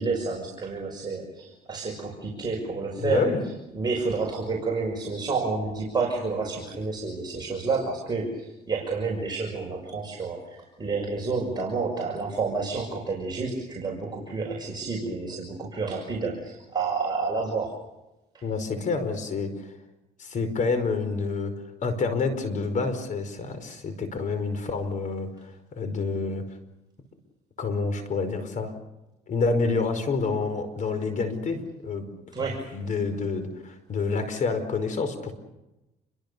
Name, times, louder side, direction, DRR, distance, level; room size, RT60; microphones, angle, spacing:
voice 1, 0.0-3.3 3.7-17.8 18.3-18.4 32.3-32.7, right 4 dB, 25° right, -2 dB, 6.2 m, -29 dB
voice 2, 2.9-3.4 18.4-19.7 20.2-21.5 21.8-26.4 27.6-28.7 29.3-32.0 32.4-32.5 32.7-35.3, left 4 dB, 50° left, 10 dB, 5.0 m, -28 dB
28.5 x 23.5 x 6.9 m, 0.96 s
cardioid pair, 110°, 17 cm